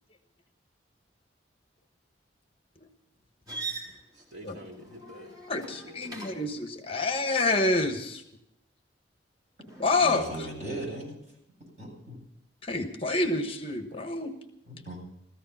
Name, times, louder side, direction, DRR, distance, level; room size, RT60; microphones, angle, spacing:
sound 1, 3.5-6.6 9.6-10.3, right 3 dB, 20° right, 3.7 m, -42 dB
voice 1, 4.1-5.4 5.7-6.5, equal, 70° right, 0 dB, 2.5 m, -48 dB
voice 2, 5.5-8.2 9.8-10.2 12.6-14.3, left 2 dB, 30° left, 6 dB, 1.2 m, -27 dB
voice 3, 10.0-11.2 11.6-12.2 14.7-15.0, right 1 dB, 35° right, -2 dB, 7.8 m, -38 dB
17.0 x 14.5 x 5.7 m, 0.77 s
head